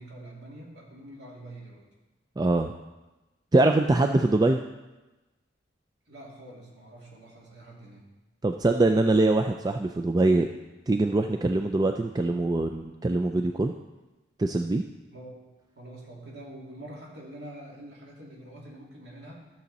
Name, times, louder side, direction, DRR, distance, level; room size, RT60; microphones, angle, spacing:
voice 1, 0.0-1.9 3.8-4.2 6.1-8.1 15.1-15.4 15.8-19.5, right 1 dB, 60° right, -3 dB, 2.6 m, -45 dB
voice 2, 2.4-2.7 3.5-4.6 8.4-10.5 10.9-13.7 14.4-14.8, right 2 dB, 20° right, 5 dB, 0.3 m, -23 dB
13.0 x 6.9 x 4.1 m, 1.1 s
head